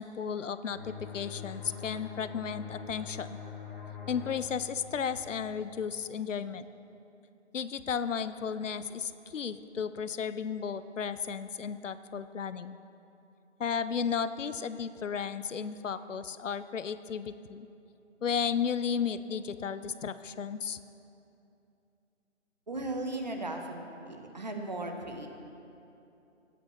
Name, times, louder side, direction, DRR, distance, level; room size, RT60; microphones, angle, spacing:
voice 1, 0.0-3.3 4.1-6.7 7.5-12.8 13.6-17.7 18.2-20.8, left 7 dB, 75° left, 13 dB, 0.6 m, -34 dB
sound 1, 0.7-6.1, left 7 dB, 15° left, 1.2 m, -44 dB
voice 2, 22.7-25.3, right 2 dB, 35° right, 4 dB, 0.8 m, -37 dB
18.0 x 8.3 x 3.0 m, 2.8 s
figure-of-eight pair, 170°, 37 cm